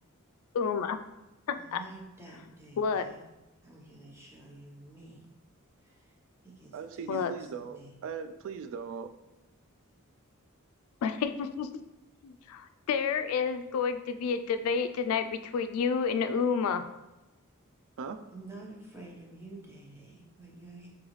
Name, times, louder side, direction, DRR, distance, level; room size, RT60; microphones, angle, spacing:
voice 1, 0.5-1.0 1.5-1.8 2.8-3.0 7.1-7.3 11.0-11.7 12.2-16.9, left 6 dB, 75° left, 0.3 m, -30 dB
voice 2, 1.5-3.2 3.6-5.3 5.8-6.2 6.4-8.0 18.3-20.9, right 2 dB, 10° right, 0.9 m, -49 dB
voice 3, 6.7-9.1 18.0-18.3, right 6 dB, 65° right, 0.3 m, -39 dB
3.9 x 3.8 x 3.1 m
head